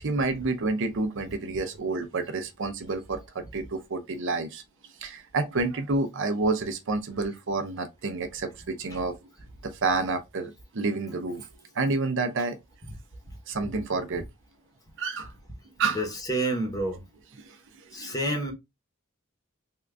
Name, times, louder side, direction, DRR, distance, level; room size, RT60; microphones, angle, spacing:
voice 1, 0.0-4.6 5.0-9.1 9.6-11.4 11.7-12.6 13.5-14.2 15.0-15.3 15.8-16.0 17.4-17.6 17.9-18.1, right 3 dB, 60° right, 0.6 m, -29 dB
voice 2, 15.9-17.1 17.9-18.5, right 1 dB, 15° left, 1.0 m, -29 dB
3.6 x 2.5 x 3.3 m
head